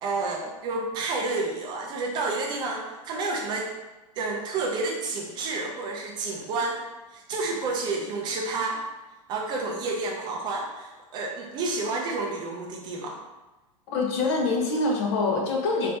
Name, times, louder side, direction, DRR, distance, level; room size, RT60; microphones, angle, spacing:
voice 1, 0.0-3.7 4.2-6.8 7.1-8.8 9.3-13.2, right 3 dB, 25° right, 0 dB, 0.4 m, -30 dB
voice 2, 13.9-15.9, left 3 dB, 50° left, 0 dB, 0.8 m, -25 dB
4.2 x 2.8 x 3.3 m, 1.1 s
supercardioid pair, 155°, 17 cm